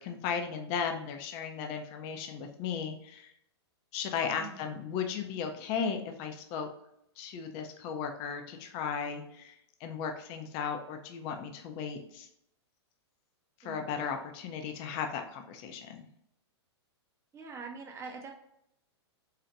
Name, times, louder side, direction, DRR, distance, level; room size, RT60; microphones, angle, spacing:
voice 1, 0.0-3.3 3.9-6.7 7.2-12.3 13.6-16.1, left 6 dB, 40° left, 5 dB, 0.5 m, -36 dB
voice 2, 4.4-4.8 13.6-13.9 17.3-18.4, right 4 dB, 20° right, 1 dB, 0.7 m, -44 dB
4.0 x 2.1 x 2.7 m, 0.75 s
hypercardioid pair, 120°, 14 cm